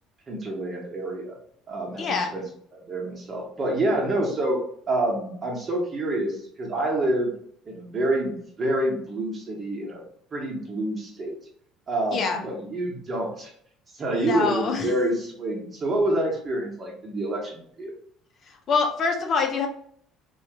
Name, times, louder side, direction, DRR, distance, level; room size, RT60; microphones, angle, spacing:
voice 1, 0.3-1.4 1.7-2.4 2.7-4.6 4.9-7.3 7.7-10.0 10.3-11.3 11.9-13.5 13.9-17.9, right 1 dB, 35° right, -1 dB, 1.1 m, -27 dB
voice 2, 2.0-2.3 12.1-12.4 14.1-14.9 18.7-19.7, left 4 dB, 50° left, 3 dB, 0.6 m, -25 dB
3.0 x 2.3 x 2.9 m, 0.64 s
supercardioid pair, 85°, 0 cm